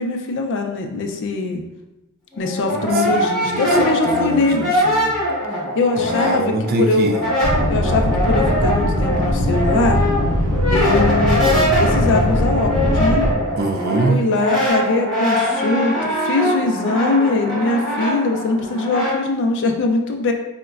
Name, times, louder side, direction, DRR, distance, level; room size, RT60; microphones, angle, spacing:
voice 1, 0.0-1.6 2.4-4.7 5.7-7.1 7.7-10.0 10.7-13.2 14.1-20.3, left 3 dB, 55° left, 4 dB, 0.4 m, -21 dB
Brass instrument, 2.3-6.7 7.0-19.2, equal, ahead, 1.5 m, -22 dB
voice 2, 2.7-5.2 6.0-7.3 13.6-14.2, right 3 dB, 45° right, 4 dB, 0.3 m, -24 dB
sound 1, 7.4-13.3, equal, 85° right, 0.7 m, -20 dB
3.8 x 2.1 x 2.3 m, 0.98 s
head